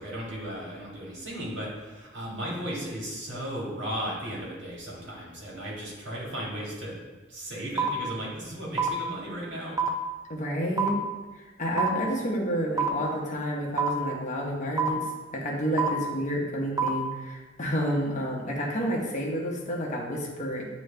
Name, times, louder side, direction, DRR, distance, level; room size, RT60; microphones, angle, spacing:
voice 1, 0.0-7.0 7.3-9.8, equal, 65° right, -4 dB, 1.9 m, -35 dB
sound 1, 7.8-7.9 8.8-8.9 9.8-9.9 10.8-10.9 11.8-11.9 12.8-12.9 13.8-13.9 14.8-14.9 15.8-15.9 16.8-16.9, right 8 dB, 20° right, 0.4 m, -24 dB
voice 2, 10.3-11.0 11.6-20.7, equal, 40° left, -2 dB, 1.0 m, -30 dB
9.0 x 3.1 x 3.3 m, 1.3 s
head